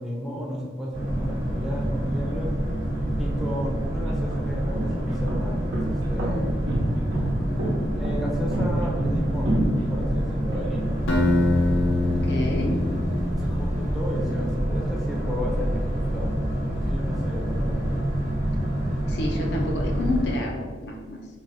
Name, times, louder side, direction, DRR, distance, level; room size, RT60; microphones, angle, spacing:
voice 1, 0.0-2.5 3.2-6.6 7.9-9.6 9.9-11.0 13.4-16.4 16.7-18.0, equal, ahead, -4 dB, 0.6 m, -33 dB
Boat Water vehicle, 0.9-20.4, right 1 dB, 40° right, 0.9 m, -27 dB
sound 1, 3.3-3.4 4.1-10.6, right 1 dB, 85° right, 0.8 m, -28 dB
Acoustic guitar, 11.1-14.1, left 2 dB, 90° left, 0.8 m, -24 dB
voice 2, 12.1-12.8 19.0-21.4, left 2 dB, 60° left, 1 dB, 0.5 m, -29 dB
3.9 x 2.2 x 4.0 m, 1.5 s
head